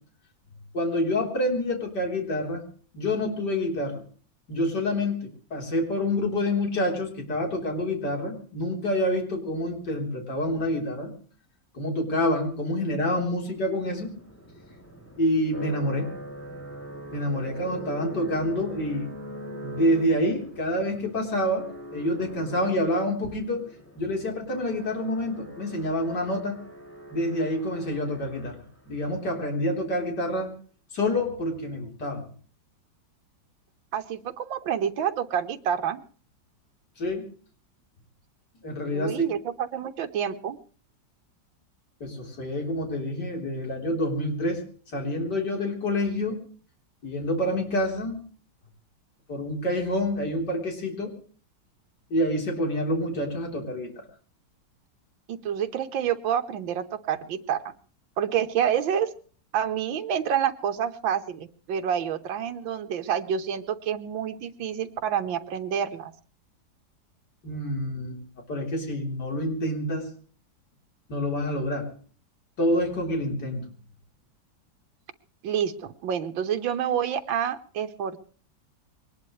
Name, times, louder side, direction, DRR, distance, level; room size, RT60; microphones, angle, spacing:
voice 1, 0.7-2.6 2.9-4.0 4.5-11.1 11.7-14.1 15.2-16.1 17.1-19.1 19.6-23.7 24.0-26.6 27.1-28.6 28.9-30.5 30.9-32.2 37.0-37.2 38.6-39.3 42.0-44.6 44.9-46.4 47.0-48.2 49.3-51.1 52.1-53.9 67.4-68.2 68.5-70.1 71.1-71.9 72.6-73.6, left 1 dB, 60° left, 1 dB, 4.5 m, -27 dB
sound 1, 12.7-28.9, right 1 dB, 5° left, 6.0 m, -42 dB
voice 2, 33.9-36.0 38.9-40.6 55.3-57.7 58.2-59.1 59.5-66.1 75.4-78.2, right 8 dB, 85° right, 7 dB, 1.8 m, -28 dB
23.0 x 19.5 x 3.2 m, 0.43 s
omnidirectional pair, 2.0 m